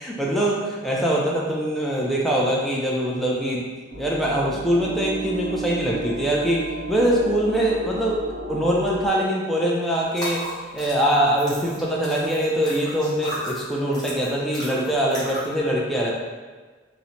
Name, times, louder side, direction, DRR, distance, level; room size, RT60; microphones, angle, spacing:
voice 1, 0.0-3.7 4.0-8.2 8.5-10.5 10.7-16.1, right 1 dB, ahead, -4 dB, 0.3 m, -23 dB
sound 1, 3.9-9.1, right 2 dB, 60° right, 0.5 m, -34 dB
sound 2, 10.1-15.6, equal, 25° left, 0.7 m, -36 dB
2.6 x 2.1 x 2.8 m, 1.4 s
head